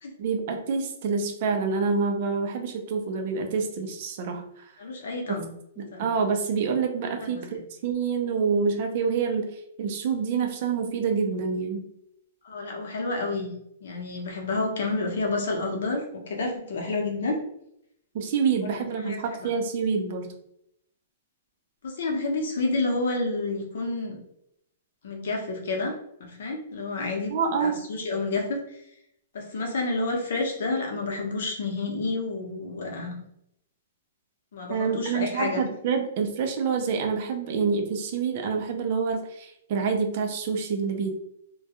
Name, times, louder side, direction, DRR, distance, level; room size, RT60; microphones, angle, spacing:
voice 1, 0.2-4.7 5.3-5.5 5.8-11.9 18.1-20.4 27.3-27.8 34.7-41.2, right 5 dB, 45° right, 4 dB, 0.4 m, -27 dB
voice 2, 4.8-5.5 5.9-6.1 7.2-7.4 12.4-13.5 13.8-17.4 18.8-19.5 21.8-24.2 25.0-25.9 26.2-27.3 27.6-28.8 29.3-33.1 34.5-35.6, left 3 dB, 70° left, 1 dB, 0.8 m, -29 dB
2.2 x 2.2 x 2.8 m, 0.75 s
hypercardioid pair, 165°, 0 cm